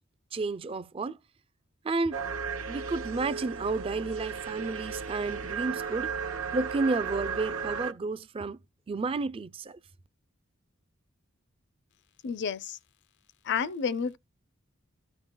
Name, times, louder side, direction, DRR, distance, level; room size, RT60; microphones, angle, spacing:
voice 1, 0.3-1.2 1.8-2.2 2.7-6.1 6.5-8.6 8.9-9.8, right 3 dB, 25° right, 0.3 m, -31 dB
sound 1, 2.1-7.9, right 5 dB, 75° right, 0.8 m, -35 dB
voice 2, 12.2-12.8 13.5-14.2, left 6 dB, 55° left, 0.5 m, -30 dB
14.0 x 5.3 x 2.2 m
head